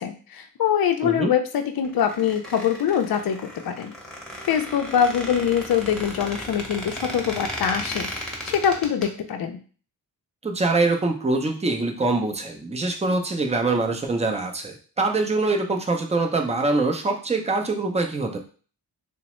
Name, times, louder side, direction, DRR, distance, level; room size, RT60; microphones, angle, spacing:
voice 1, 0.0-3.9 4.4-9.6, left 8 dB, 55° left, 6 dB, 0.5 m, -24 dB
Squeak, 1.8-9.1, equal, ahead, 0.9 m, -35 dB
voice 2, 10.4-18.4, right 3 dB, 15° right, 3 dB, 0.5 m, -24 dB
2.8 x 2.0 x 3.0 m, 0.39 s
cardioid pair, 45°, 43 cm